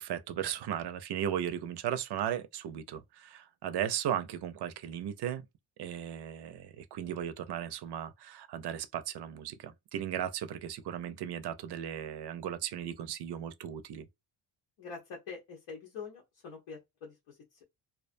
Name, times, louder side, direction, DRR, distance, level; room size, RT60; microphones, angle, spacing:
voice 1, 0.0-5.4 5.8-14.1, right 10 dB, 55° right, 0.5 m, -36 dB
voice 2, 14.8-17.6, left 5 dB, 85° left, 0.9 m, -45 dB
2.3 x 2.1 x 2.5 m
cardioid pair, 70°, 50 cm